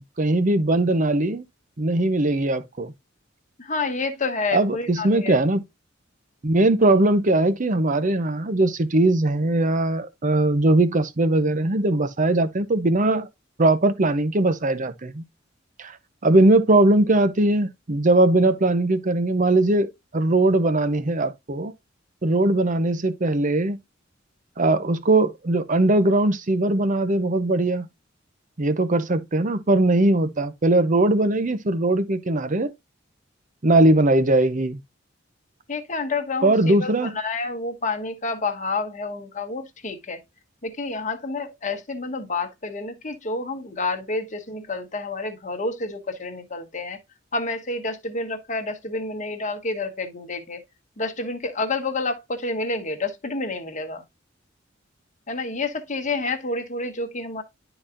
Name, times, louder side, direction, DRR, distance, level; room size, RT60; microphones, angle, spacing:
voice 1, 0.0-1.4 1.8-2.9 4.5-5.6 6.4-13.3 13.6-15.2 15.8-16.0 16.2-21.7 22.2-23.8 24.6-27.8 28.6-32.7 33.6-34.8 36.4-37.1, right 2 dB, 40° right, 0.8 m, -20 dB
voice 2, 3.6-5.4 35.7-40.2 40.6-47.0 47.3-50.6 51.0-54.0 55.3-57.4, left 3 dB, 40° left, 1.3 m, -29 dB
11.5 x 4.0 x 2.5 m
head